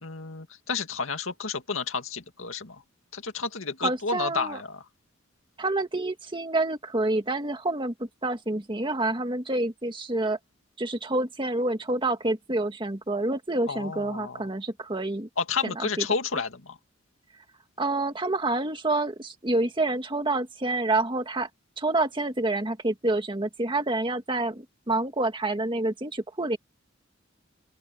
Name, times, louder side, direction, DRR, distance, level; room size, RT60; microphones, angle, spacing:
voice 1, 0.0-2.8 3.1-4.8 13.6-14.5 15.4-16.8, left 5 dB, 85° left, 2.2 m, -31 dB
voice 2, 3.8-4.6 5.6-10.4 10.8-15.3 15.6-16.1 17.8-21.5 21.8-26.6, right 2 dB, 25° right, 1.9 m, -28 dB
open air
head